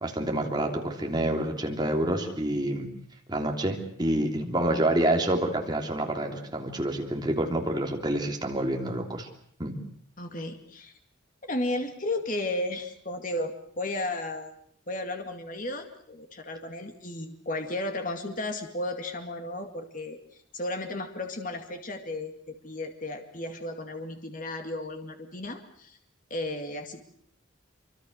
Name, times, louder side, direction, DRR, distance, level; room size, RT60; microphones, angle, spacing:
voice 1, 0.0-2.9 3.3-9.3 9.6-9.8, right 1 dB, 20° right, 2 dB, 3.2 m, -28 dB
voice 2, 10.2-10.9 11.4-14.5 14.9-20.2 20.5-26.0 26.3-27.0, left 2 dB, 40° left, 5 dB, 2.3 m, -34 dB
26.0 x 24.5 x 6.6 m, 0.62 s
head